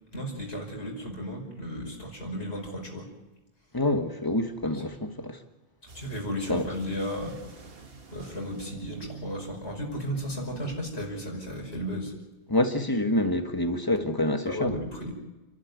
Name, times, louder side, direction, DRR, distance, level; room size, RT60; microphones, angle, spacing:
voice 1, 0.1-3.1 4.6-4.8 5.8-7.4 7.6-7.7 8.1-12.1 14.5-15.1, equal, 75° left, 5.8 m, -34 dB
voice 2, 3.7-5.4 6.5-6.6 12.5-14.7, left 1 dB, 20° left, 1.5 m, -27 dB
sound 1, 5.9-11.2, right 4 dB, 65° right, 1.8 m, -47 dB
29.5 x 12.0 x 9.6 m
omnidirectional pair, 1.1 m